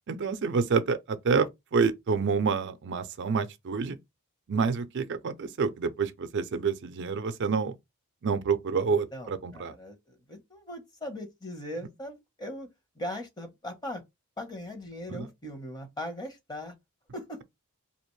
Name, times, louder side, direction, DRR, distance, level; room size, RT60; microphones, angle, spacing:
voice 1, 0.1-4.0 4.5-7.8 8.2-9.7 15.1-15.3, right 5 dB, 55° right, 0.5 m, -28 dB
voice 2, 8.8-12.7 12.9-14.0 14.4-16.7 17.1-17.4, left 1 dB, 20° left, 0.9 m, -39 dB
4.2 x 2.9 x 3.1 m
head